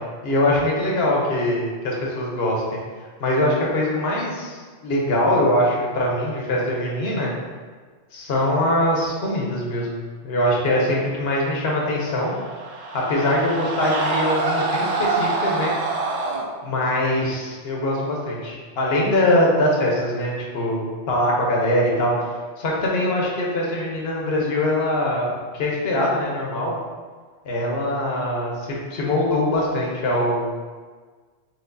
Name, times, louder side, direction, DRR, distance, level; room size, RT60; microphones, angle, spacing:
voice 1, 0.2-2.8 3.2-7.3 8.1-10.0 10.2-12.3 12.9-15.7 16.6-22.1 22.6-26.7 27.4-30.5, left 1 dB, 65° left, -3 dB, 1.1 m, -22 dB
sound 1, 12.0-16.4, right 3 dB, 50° right, 0.4 m, -26 dB
4.5 x 3.7 x 2.6 m, 1.5 s
omnidirectional pair, 1.2 m